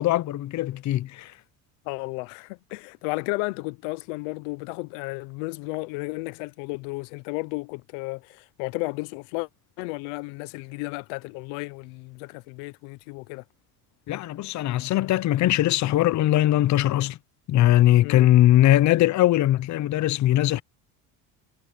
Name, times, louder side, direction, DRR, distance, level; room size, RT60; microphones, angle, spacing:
voice 1, 0.0-1.3 14.1-17.2 17.5-20.6, left 14 dB, 50° left, 0.9 m, -20 dB
voice 2, 1.9-9.5 9.8-13.4 18.0-18.3, left 25 dB, 80° left, 0.8 m, -33 dB
supercardioid pair, 100°, 37 cm